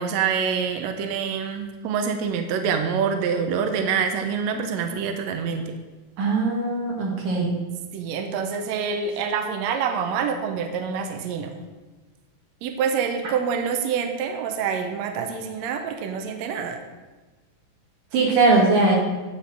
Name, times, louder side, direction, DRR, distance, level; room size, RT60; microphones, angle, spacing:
voice 1, 0.0-5.8 7.9-11.6 12.6-16.8, right 6 dB, 85° right, 6 dB, 1.5 m, -26 dB
voice 2, 6.2-7.5 18.1-19.0, right 3 dB, 60° right, -2 dB, 2.9 m, -20 dB
9.5 x 4.3 x 6.1 m, 1.3 s
omnidirectional pair, 4.0 m